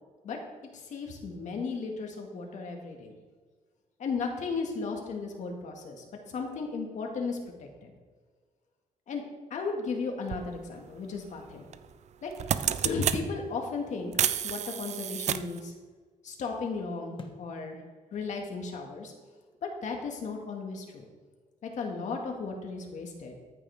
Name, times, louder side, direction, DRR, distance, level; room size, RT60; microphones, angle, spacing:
voice 1, 0.7-3.1 4.0-7.9 9.1-9.2 9.5-11.7 12.2-12.3 12.8-14.2 14.4-15.7 16.2-17.8 18.1-19.1 19.6-21.1 21.6-23.3, left 4 dB, 65° left, 2 dB, 2.0 m, -35 dB
sound 1, 10.3-10.4 11.7-11.9 12.2-13.2 14.1-15.6, right 9 dB, 60° right, 0.5 m, -29 dB
sound 2, 13.1-13.5 14.3-15.5 17.2-17.5, left 4 dB, 40° left, 1.3 m, -42 dB
14.0 x 9.0 x 3.6 m, 1.5 s
cardioid pair, 135°, 13 cm